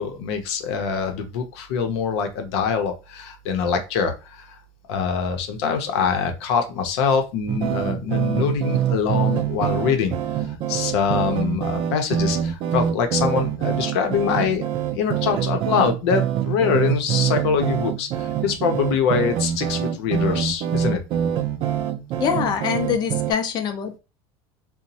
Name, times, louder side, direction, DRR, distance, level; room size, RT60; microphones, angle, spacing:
voice 1, 0.0-4.5 4.9-10.2 10.7-21.0, left 6 dB, 80° left, 6 dB, 0.7 m, -24 dB
sound 1, 7.5-23.3, right 9 dB, 40° right, 0.4 m, -25 dB
voice 2, 22.2-24.0, left 7 dB, 30° left, 7 dB, 0.4 m, -24 dB
2.9 x 2.1 x 2.7 m, 0.29 s
cardioid pair, 165°, 14 cm